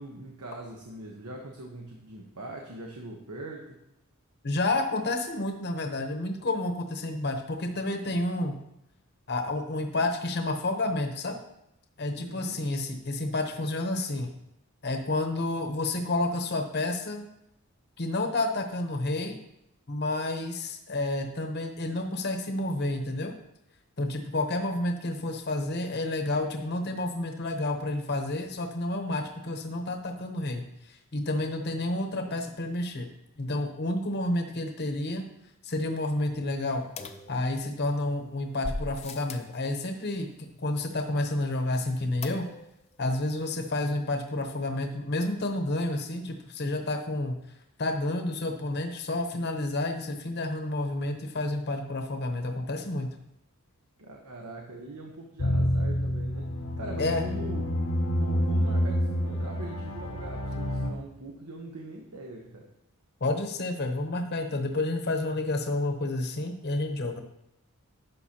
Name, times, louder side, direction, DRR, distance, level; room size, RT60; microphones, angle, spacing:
voice 1, 0.0-3.8 12.2-12.6 54.0-56.5 56.8-57.7 58.1-62.7, right 2 dB, 85° right, 1 dB, 1.0 m, -41 dB
voice 2, 4.4-8.6 9.3-11.4 12.0-14.3 14.8-17.2 18.0-19.4 19.9-23.3 24.0-30.6 31.1-33.1 33.4-35.3 35.6-36.9 37.3-42.5 43.0-47.4 47.8-53.1 57.0-57.2 63.2-67.2, left 2 dB, 50° left, 4 dB, 0.9 m, -30 dB
sound 1, 37.0-37.9 38.6-39.6 42.2-42.8 43.1-43.2 43.4-43.5, left 2 dB, 30° left, 0.5 m, -38 dB
sound 2, 55.4-60.9, equal, 70° left, 0.9 m, -28 dB
11.0 x 6.5 x 2.9 m, 0.82 s
head